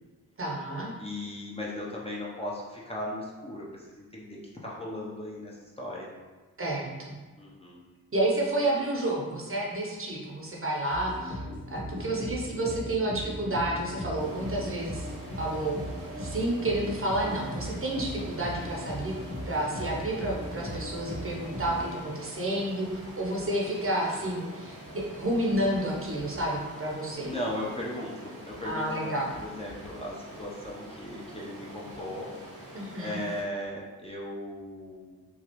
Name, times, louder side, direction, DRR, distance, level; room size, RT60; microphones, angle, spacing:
voice 1, 0.4-0.9 6.6-7.2 8.1-11.4 11.7-15.8 16.2-19.1 19.5-27.3 28.6-29.3 32.7-33.2, right 1 dB, 35° right, -3 dB, 0.8 m, -30 dB
voice 2, 1.0-6.1 7.4-7.8 27.2-29.1 29.4-32.6 33.0-35.2, left 1 dB, 15° left, -5 dB, 0.7 m, -37 dB
sound 1, 10.9-22.0, equal, 40° left, 1.2 m, -38 dB
Stream, 14.1-33.4, right 1 dB, 70° right, 1.1 m, -46 dB
3.1 x 2.3 x 3.0 m, 1.4 s
cardioid pair, 45°, 38 cm